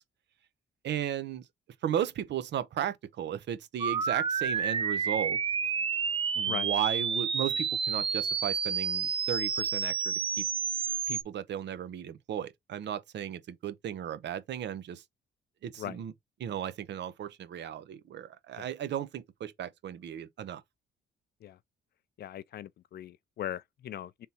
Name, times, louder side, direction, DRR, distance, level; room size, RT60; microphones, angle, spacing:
voice 1, 0.8-1.5 1.8-5.4 6.3-10.5 11.1-15.0 15.6-16.1 16.4-20.6, right 10 dB, 65° right, 0.7 m, -35 dB
sound 1, 3.8-11.2, right 6 dB, 30° right, 0.4 m, -30 dB
voice 2, 22.2-24.3, left 11 dB, 55° left, 0.4 m, -39 dB
3.6 x 2.8 x 4.2 m
cardioid pair, 90°, 20 cm